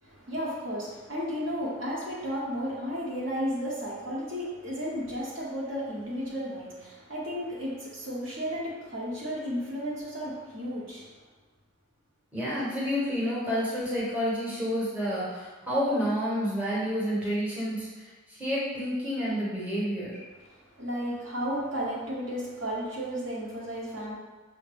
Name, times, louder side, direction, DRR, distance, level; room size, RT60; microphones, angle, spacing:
voice 1, 0.0-11.1 20.4-24.1, equal, 60° right, -5 dB, 1.0 m, -33 dB
voice 2, 12.3-20.2, equal, 5° right, -9 dB, 0.9 m, -29 dB
5.6 x 2.1 x 3.3 m, 1.3 s
head